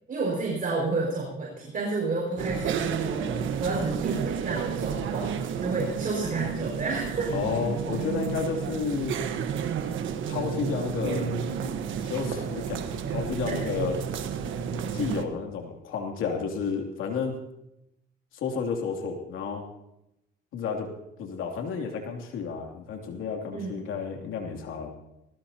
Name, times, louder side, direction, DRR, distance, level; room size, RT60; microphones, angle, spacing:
voice 1, 0.1-3.3 3.6-5.3 5.6-7.4 13.4-13.6 23.5-23.8, right 3 dB, 45° right, -3 dB, 5.5 m, -30 dB
sound 1, 2.4-15.2, right 7 dB, 80° right, 1.3 m, -31 dB
voice 2, 7.3-9.2 10.3-11.3 12.0-14.0 14.9-17.3 18.3-19.7 20.5-20.9 21.2-24.9, left 5 dB, 85° left, 2 dB, 3.0 m, -31 dB
20.0 x 17.0 x 2.9 m, 0.85 s
cardioid pair, 90°, 20 cm